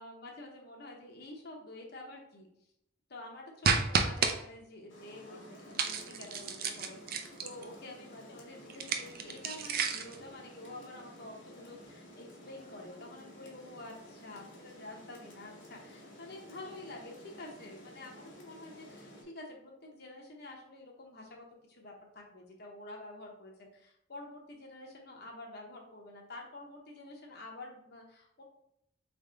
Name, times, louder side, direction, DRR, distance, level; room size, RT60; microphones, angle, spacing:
voice 1, 0.0-2.5 3.1-28.4, left 2 dB, 55° left, 0 dB, 0.8 m, -48 dB
sound 1, 3.6-4.3 5.8-7.6 8.7-10.2, right 5 dB, 50° right, 0.4 m, -31 dB
Rain, 4.9-19.2, equal, 75° left, 1.3 m, -53 dB
3.5 x 3.5 x 3.8 m, 0.77 s
head